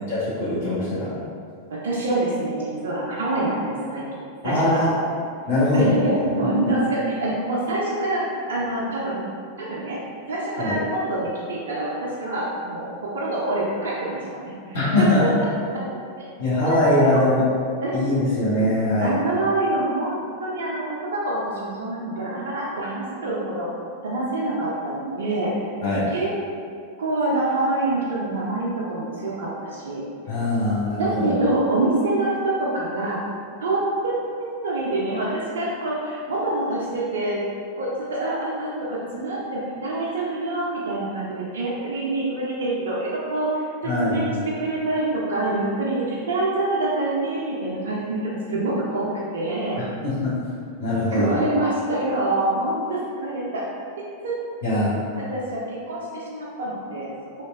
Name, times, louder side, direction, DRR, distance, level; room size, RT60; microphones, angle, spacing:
voice 1, 0.1-1.1 4.4-4.9 5.5-5.9 6.2-6.3 10.6-10.8 14.7-15.2 16.4-17.5 17.9-19.1 25.8-26.1 30.3-31.3 43.8-44.4 49.8-50.3 50.8-51.3 54.6-55.0, left 1 dB, 55° left, -10 dB, 0.8 m, -22 dB
voice 2, 1.7-4.0 4.4-4.8 5.7-9.3 9.6-10.0 10.3-15.1 15.4-15.5 16.6-17.2 17.8-18.0 19.0-23.7 24.0-25.5 26.1-26.3 27.0-30.0 31.0-33.2 33.6-37.4 37.8-43.6 44.0-44.3 44.6-49.8 51.1-53.7 54.2-54.4 55.1-57.1, right 2 dB, 65° right, -5 dB, 0.4 m, -26 dB
2.8 x 2.2 x 2.3 m, 2.3 s
figure-of-eight pair, 90°, 0 cm